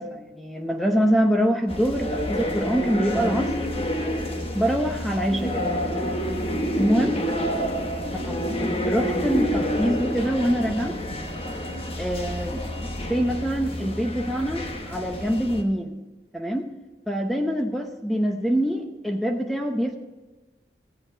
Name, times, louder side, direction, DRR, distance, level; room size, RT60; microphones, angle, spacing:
voice 1, 0.0-3.5 4.5-5.7 6.8-7.1 8.3-8.4 8.8-11.0 12.0-16.0 16.3-16.7 17.1-20.0, equal, ahead, 3 dB, 0.8 m, -25 dB
sound 1, 1.7-15.6, equal, 30° left, 1.1 m, -28 dB
15.5 x 8.0 x 4.4 m, 1.2 s
head